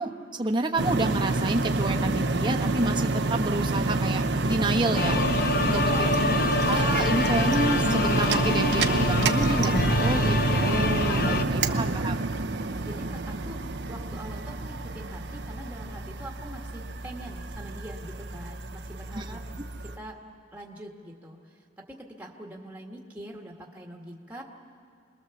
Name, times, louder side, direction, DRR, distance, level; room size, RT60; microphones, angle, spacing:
voice 1, 0.0-5.2 5.6-6.1 6.7-12.1 19.1-19.2, right 2 dB, 25° right, 2 dB, 1.1 m, -29 dB
sound 1, 0.8-20.0, right 3 dB, 65° right, 0.8 m, -27 dB
sound 2, 4.9-11.4, left 3 dB, 55° left, 0.7 m, -27 dB
voice 2, 5.7-6.6 12.8-13.6 13.9-19.4 19.8-20.2 20.5-24.4, right 1 dB, 10° right, 0 dB, 1.7 m, -43 dB
25.5 x 20.5 x 7.1 m, 2.2 s
head